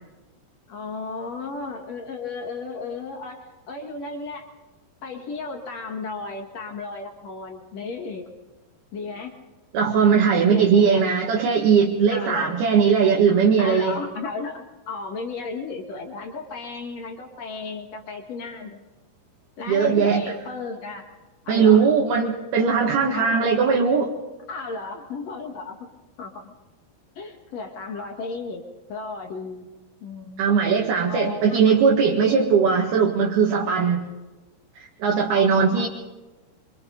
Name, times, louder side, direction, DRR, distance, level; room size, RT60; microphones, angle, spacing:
voice 1, 0.7-4.5 5.0-8.3 8.9-9.3 10.5-11.2 12.1-12.6 13.6-18.8 19.6-21.1 21.4-21.9 23.1-23.8 24.5-25.9 26.2-26.5 27.2-28.6 28.9-29.7 30.0-30.4 31.1-31.8 35.3-35.9, left 3 dB, 50° left, 2 dB, 2.1 m, -34 dB
voice 2, 9.7-14.0 19.7-20.2 21.5-24.1 30.4-34.1 34.8-35.9, right 6 dB, 60° right, -2 dB, 3.5 m, -19 dB
27.0 x 24.5 x 4.0 m, 1.1 s
omnidirectional pair, 5.4 m